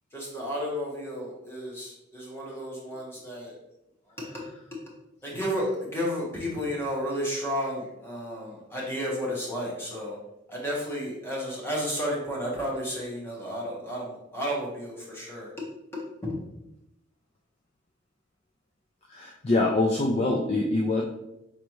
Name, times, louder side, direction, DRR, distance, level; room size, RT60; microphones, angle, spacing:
voice 1, 0.1-3.6 4.2-4.4 5.2-10.2 10.5-15.6 15.9-16.4, equal, 10° left, -4 dB, 1.3 m, -32 dB
voice 2, 19.1-21.0, left 2 dB, 30° left, 0 dB, 0.4 m, -24 dB
5.3 x 3.3 x 3.0 m, 0.86 s
head